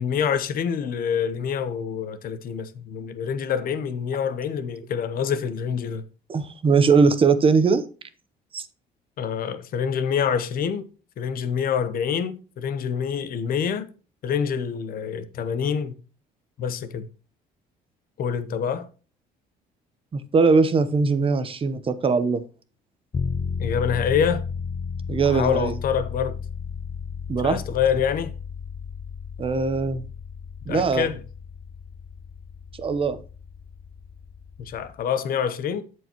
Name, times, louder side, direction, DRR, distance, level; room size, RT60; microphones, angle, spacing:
voice 1, 0.0-6.0 9.2-10.9 11.2-13.9 14.2-15.9 16.6-17.1 18.2-18.9 23.6-24.4 25.2-26.4 27.4-28.3 30.7-31.2 34.6-35.8, left 7 dB, 60° left, 0.9 m, -26 dB
voice 2, 6.3-7.8 8.5-8.7 20.1-22.4 25.1-25.7 27.3-27.6 29.4-30.1 30.7-31.1 32.8-33.2, right 4 dB, 30° right, 0.9 m, -20 dB
sound 1, 23.1-35.0, left 5 dB, 25° left, 0.6 m, -34 dB
13.5 x 4.7 x 3.0 m
cardioid pair, 110°, 17 cm